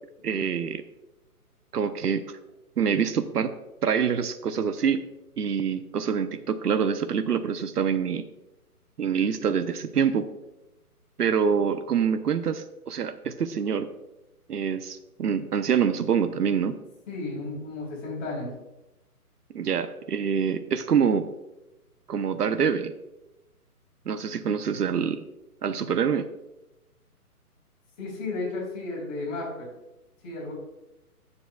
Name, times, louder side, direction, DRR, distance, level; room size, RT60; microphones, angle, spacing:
voice 1, 0.2-0.8 1.7-2.2 2.8-3.5 3.8-5.1 5.4-8.2 9.0-10.3 11.2-13.9 14.5-16.8 19.5-21.3 22.1-22.9 24.1-25.2 25.6-26.3, right 7 dB, 90° right, 11 dB, 0.8 m, -25 dB
voice 2, 17.1-18.5 28.0-29.7 30.2-30.5, left 3 dB, 20° left, -5 dB, 3.5 m, -33 dB
17.5 x 7.0 x 2.3 m, 0.97 s
hypercardioid pair, 160°, 46 cm